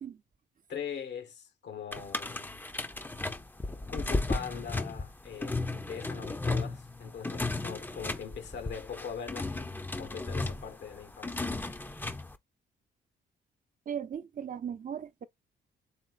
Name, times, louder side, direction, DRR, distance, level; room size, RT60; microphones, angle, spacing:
voice 1, 0.7-2.6 3.9-11.6, left 7 dB, 75° left, 1.3 m, -41 dB
sound 1, 1.9-12.3, left 2 dB, 10° left, 0.6 m, -35 dB
voice 2, 13.9-15.2, right 8 dB, 45° right, 0.7 m, -37 dB
4.2 x 3.6 x 2.5 m
cardioid pair, 80°, 18 cm